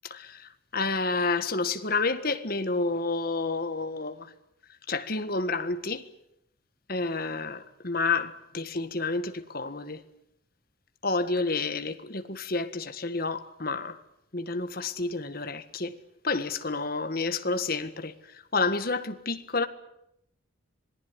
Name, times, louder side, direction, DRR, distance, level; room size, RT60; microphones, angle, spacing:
voice 1, 0.0-4.3 4.9-6.1 6.9-10.0 11.0-14.0 14.3-16.0 16.2-19.7, left 3 dB, 45° left, 1.7 m, -30 dB
26.5 x 18.5 x 9.7 m
head